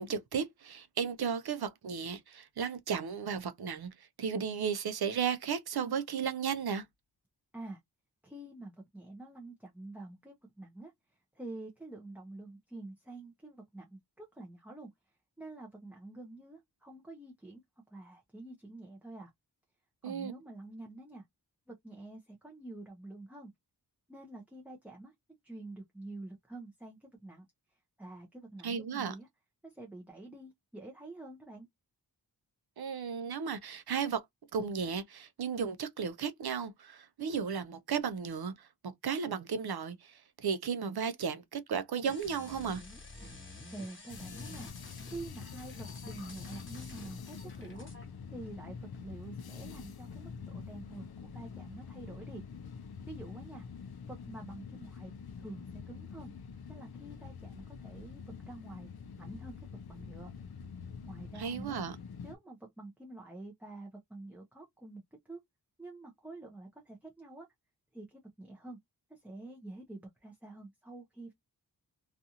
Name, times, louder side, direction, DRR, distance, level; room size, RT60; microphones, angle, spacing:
voice 1, 0.0-6.9 20.0-20.3 28.6-29.1 32.8-34.2 34.5-42.8 61.4-62.0, right 6 dB, 65° right, 0.5 m, -34 dB
voice 2, 8.2-14.9 15.4-17.6 17.9-19.3 20.0-21.2 21.7-23.5 24.1-25.1 25.4-27.4 27.7-29.3 29.6-31.7 43.7-44.7 45.0-47.9 48.3-52.4 53.1-53.6 54.1-55.1 55.4-56.3 56.7-58.9 59.2-60.3 61.0-61.8 62.2-65.4 65.8-67.5 67.9-68.8 69.1-71.3, right 2 dB, 5° right, 0.6 m, -47 dB
sound 1, 42.0-48.1, left 2 dB, 30° left, 1.0 m, -50 dB
sound 2, 44.1-62.4, left 6 dB, 65° left, 0.6 m, -46 dB
2.5 x 2.4 x 2.8 m
wide cardioid pair, 100°, 42 cm